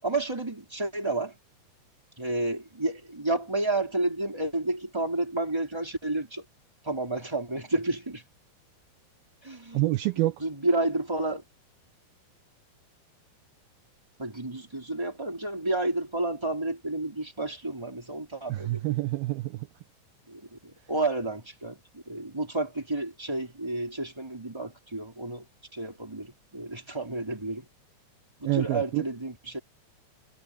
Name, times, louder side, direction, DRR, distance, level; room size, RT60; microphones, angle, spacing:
voice 1, 0.0-1.3 2.2-6.4 6.8-8.2 9.4-9.8 10.4-11.4 14.2-18.8 20.3-25.4 25.7-27.7 28.4-29.6, right 2 dB, 5° right, 4.4 m, -31 dB
voice 2, 9.7-10.4 18.5-19.7 28.5-29.0, right 18 dB, 80° right, 2.3 m, -27 dB
omnidirectional pair, 4.9 m